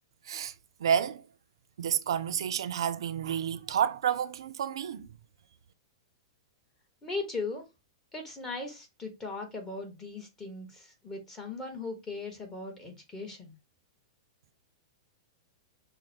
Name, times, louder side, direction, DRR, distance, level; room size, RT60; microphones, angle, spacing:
voice 1, 0.8-1.2 1.8-5.1, right 8 dB, 80° right, 0.4 m, -30 dB
voice 2, 7.0-7.6 8.1-13.5, left 3 dB, 15° left, 1.3 m, -38 dB
6.1 x 2.1 x 2.8 m
hypercardioid pair, 130°, 3 cm